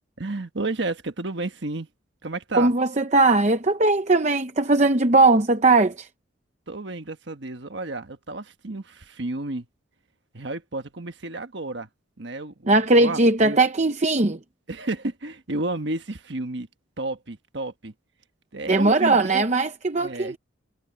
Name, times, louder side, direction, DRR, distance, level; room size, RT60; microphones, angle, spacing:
voice 1, 0.2-1.9 2.2-2.7 6.7-9.7 10.3-11.9 12.2-13.6 14.7-16.7 17.0-17.9 18.5-19.4 19.9-20.4, right 2 dB, 55° right, 1.4 m, -31 dB
voice 2, 2.6-6.1 12.7-14.4 18.7-20.4, right 2 dB, 35° right, 0.8 m, -19 dB
head